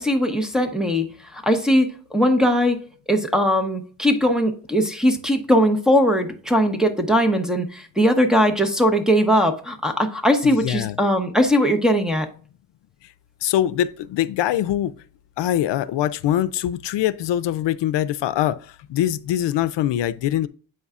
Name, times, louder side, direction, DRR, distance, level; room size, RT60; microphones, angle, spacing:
voice 1, 0.0-12.3, equal, ahead, 0.8 m, -20 dB
voice 2, 10.4-11.0 13.4-14.9 15.4-20.5, left 12 dB, 90° left, 0.5 m, -23 dB
7.8 x 5.4 x 2.4 m
wide cardioid pair, 130°, 42 cm